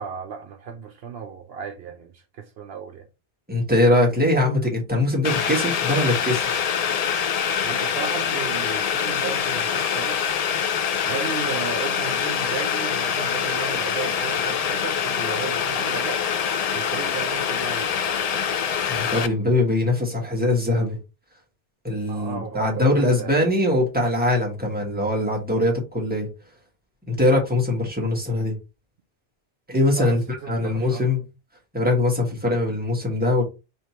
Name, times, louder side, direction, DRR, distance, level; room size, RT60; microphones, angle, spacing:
voice 1, 0.0-3.1 7.6-10.2 11.0-16.2 16.7-18.3 22.0-23.4 29.9-31.1, right 7 dB, 70° right, 0.8 m, -35 dB
voice 2, 3.5-6.7 18.9-21.0 21.8-26.3 27.1-28.5 29.7-30.2 30.5-31.2 31.7-33.4, left 1 dB, 10° right, 1.3 m, -22 dB
Boiling, 5.2-19.3, left 7 dB, 55° left, 0.4 m, -25 dB
3.3 x 2.8 x 4.2 m
omnidirectional pair, 1.1 m